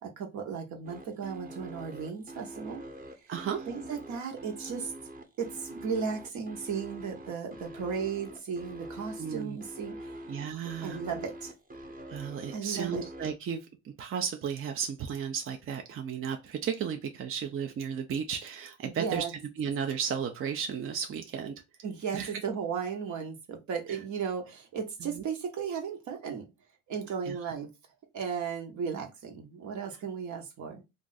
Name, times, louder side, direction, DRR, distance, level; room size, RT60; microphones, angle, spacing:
voice 1, 0.0-2.8 3.7-4.9 5.4-10.2 10.8-11.5 12.5-13.0 18.8-19.3 21.8-26.4 26.9-27.7 28.1-30.8, right 6 dB, 70° right, 1.0 m, -35 dB
sound 1, 0.8-13.3, right 1 dB, 30° right, 0.8 m, -44 dB
voice 2, 3.3-3.7 9.2-9.6 10.3-11.0 12.1-19.3 19.6-21.6 22.1-22.3 25.0-25.2 27.3-27.4, right 7 dB, 45° right, 0.5 m, -34 dB
2.5 x 2.4 x 3.9 m
cardioid pair, 90°, 30 cm